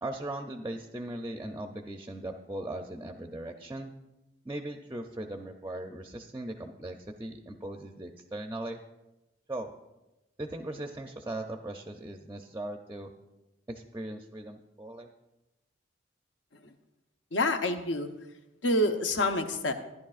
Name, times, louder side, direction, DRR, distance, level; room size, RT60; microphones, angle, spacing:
voice 1, 0.0-3.9 4.4-8.8 9.5-9.7 10.4-13.1 13.7-15.1, right 1 dB, 15° right, 4 dB, 0.5 m, -39 dB
voice 2, 17.3-18.1 18.6-19.7, left 1 dB, 80° left, 6 dB, 0.9 m, -27 dB
14.5 x 10.5 x 2.4 m, 1.0 s
head